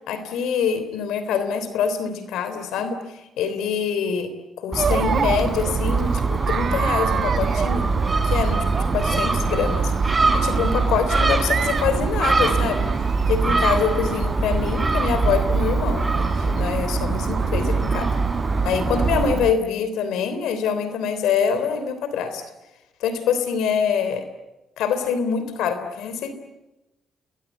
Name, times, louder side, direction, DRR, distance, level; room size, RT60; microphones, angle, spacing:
voice 1, 0.1-8.0 8.2-9.9 10.3-12.9 13.3-18.1 18.6-22.4 23.0-24.3 24.8-26.3, left 6 dB, 85° left, 11 dB, 3.4 m, -25 dB
Gull seagull, 4.7-19.3, right 3 dB, 25° right, 3.6 m, -24 dB
Chatter, 4.8-19.5, right 6 dB, 50° right, 1.2 m, -27 dB
30.0 x 21.5 x 8.2 m, 1.0 s
cardioid pair, 90°, 0 cm